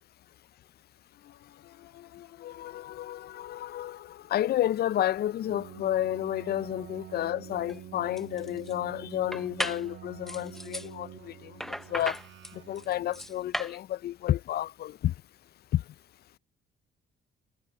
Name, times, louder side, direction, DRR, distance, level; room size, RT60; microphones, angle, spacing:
sound 1, 1.1-12.1, left 12 dB, 80° left, 2.6 m, -54 dB
voice 1, 2.4-4.0 4.3-11.5 11.9-12.2 12.7-15.1 15.7-15.8, left 12 dB, 55° left, 0.4 m, -31 dB
Keyboard (musical), 5.4-13.5, right 13 dB, 70° right, 1.2 m, -47 dB
sound 2, 7.6-7.8 8.2-8.7 9.3-9.9 10.3-10.9 11.6-13.8, equal, ahead, 0.6 m, -36 dB
cardioid pair, 90°, 20 cm